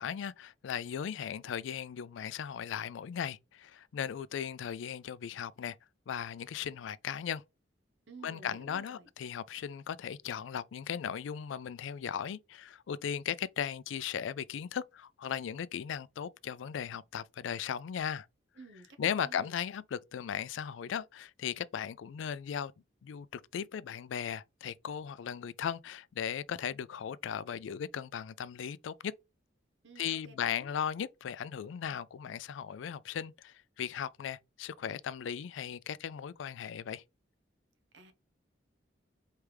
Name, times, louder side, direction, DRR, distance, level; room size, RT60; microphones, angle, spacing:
voice 1, 0.0-5.8 6.1-7.4 8.2-18.3 19.0-22.7 23.0-29.1 30.0-37.0, left 8 dB, 80° left, 0.3 m, -37 dB
voice 2, 8.1-9.1 18.6-19.5 29.8-30.7 37.9-38.1, right 2 dB, 70° right, 0.8 m, -53 dB
4.7 x 3.3 x 3.3 m
head